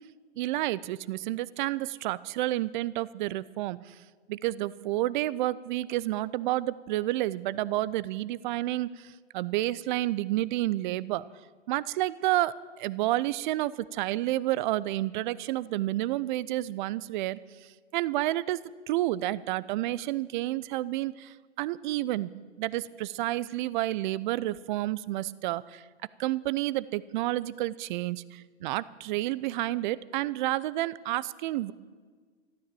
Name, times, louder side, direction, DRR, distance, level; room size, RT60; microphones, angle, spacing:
voice 1, 0.4-3.9 4.3-11.2 11.7-17.4 17.9-22.3 22.6-25.8 26.2-31.7, right 16 dB, 45° right, 20 dB, 0.5 m, -30 dB
13.0 x 12.5 x 7.6 m, 1.6 s
hypercardioid pair, 120°, 33 cm